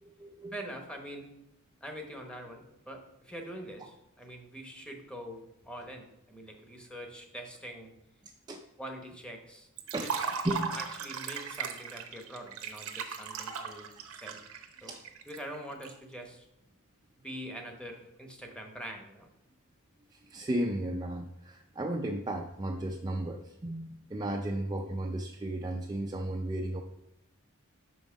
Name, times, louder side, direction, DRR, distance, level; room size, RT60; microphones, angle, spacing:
voice 1, 0.0-0.5 8.2-8.6 9.9-10.1 10.4-10.8 14.9-15.0 20.1-26.8, right 1 dB, 20° right, 1 dB, 0.4 m, -34 dB
voice 2, 0.5-1.3 1.8-7.9 8.8-9.7 10.0-10.1 10.7-14.4 14.8-14.9 15.3-16.5 17.2-19.3, equal, 5° left, 3 dB, 0.9 m, -44 dB
Liquid, 9.8-15.9, right 6 dB, 75° right, 0.8 m, -37 dB
6.0 x 5.4 x 4.9 m, 0.85 s
head